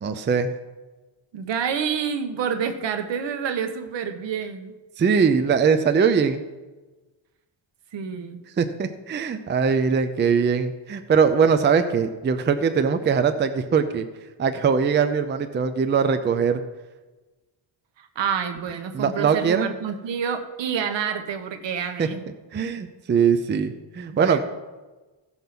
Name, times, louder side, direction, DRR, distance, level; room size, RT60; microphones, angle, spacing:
voice 1, 0.0-0.5 5.0-6.4 8.6-14.1 14.4-16.6 18.9-19.7 22.0-22.1 22.5-24.4, right 6 dB, 25° right, 9 dB, 0.5 m, -21 dB
voice 2, 1.3-4.7 7.9-8.4 18.0-22.2 24.1-24.4, right 7 dB, 65° right, 7 dB, 1.2 m, -28 dB
15.5 x 5.5 x 5.9 m, 1.2 s
cardioid pair, 145°, 46 cm